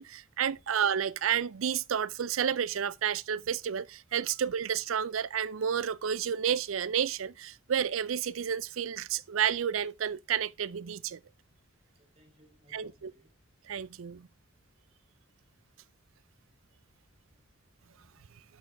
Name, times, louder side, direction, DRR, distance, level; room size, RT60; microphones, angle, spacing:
voice 1, 0.0-11.2 12.7-13.1 13.6-14.3, right 8 dB, 85° right, 0.5 m, -31 dB
voice 2, 11.9-13.3 17.1-17.5 18.0-18.1, equal, 30° right, 3.5 m, -64 dB
11.0 x 6.3 x 3.4 m
head